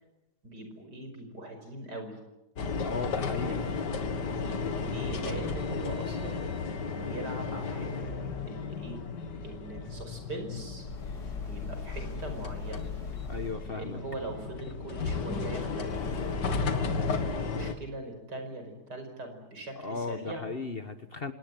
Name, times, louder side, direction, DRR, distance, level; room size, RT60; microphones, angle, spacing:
voice 1, 0.4-2.2 3.4-3.6 4.4-6.5 6.9-8.1 8.5-9.0 9.4-10.9 11.4-12.9 13.7-20.5, right 2 dB, 75° right, 6 dB, 5.9 m, -41 dB
sound 1, 2.6-17.7, left 4 dB, 85° left, 2.3 m, -34 dB
voice 2, 2.8-3.6 13.3-14.0 19.8-21.3, left 4 dB, 40° left, 10 dB, 1.3 m, -36 dB
sound 2, 10.8-13.9 15.8-16.7, left 4 dB, 70° left, 4.1 m, -39 dB
26.5 x 19.0 x 9.2 m, 0.95 s
omnidirectional pair, 1.8 m